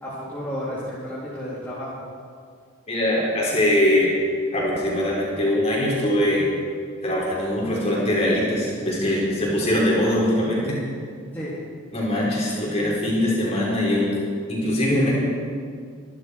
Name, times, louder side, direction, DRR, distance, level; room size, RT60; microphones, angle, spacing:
voice 1, 0.0-2.0 11.3-11.5, equal, 10° left, -10 dB, 2.9 m, -32 dB
voice 2, 2.9-4.1 4.5-6.4 7.0-10.8 11.9-14.2 14.5-15.1, left 1 dB, 30° left, -5 dB, 5.1 m, -22 dB
23.5 x 12.0 x 4.9 m, 2.1 s
head